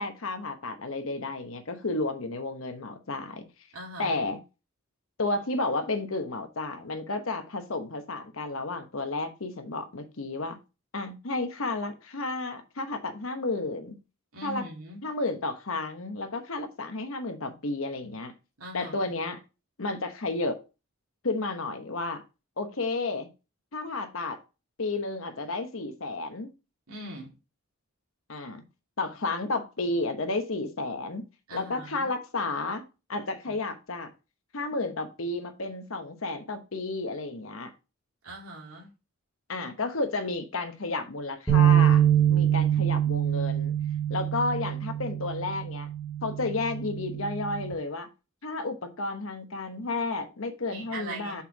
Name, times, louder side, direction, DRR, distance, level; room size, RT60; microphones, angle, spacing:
voice 1, 0.0-3.4 4.0-4.4 5.2-10.6 10.9-14.0 14.4-14.7 15.0-18.3 18.7-19.4 19.8-20.6 21.2-22.2 22.6-23.3 23.7-24.4 24.8-26.5 28.3-28.6 29.0-31.2 31.5-32.8 33.1-34.1 34.5-37.7 39.5-43.7 44.1-45.9 46.2-48.1 48.4-51.4, left 3 dB, 70° left, 1.0 m, -32 dB
voice 2, 3.7-4.2 14.3-15.0 18.6-19.0 26.9-27.3 31.5-32.1 33.5-33.6 38.2-38.9 50.7-51.4, right 1 dB, 80° right, 2.3 m, -40 dB
sound 1, 41.5-47.7, right 10 dB, 10° left, 1.6 m, -25 dB
5.6 x 4.5 x 4.6 m
head